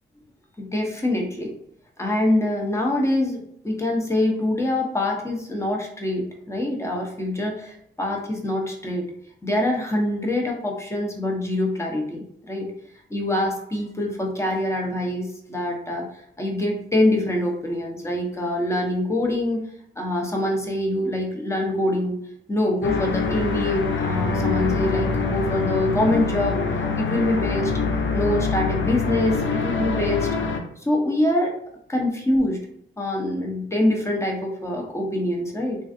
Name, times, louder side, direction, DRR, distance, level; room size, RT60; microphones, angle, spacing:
voice 1, 0.6-1.5 2.0-9.1 9.4-12.7 13.1-16.1 16.4-19.6 20.0-22.2 22.5-26.7 27.0-27.7 28.1-30.3 30.9-31.6 31.9-32.6 33.0-35.8, left 1 dB, 15° left, 0 dB, 0.8 m, -24 dB
sound 1, 22.8-30.6, left 4 dB, 70° left, 0.5 m, -25 dB
3.1 x 2.5 x 2.6 m, 0.69 s
cardioid pair, 60°, 20 cm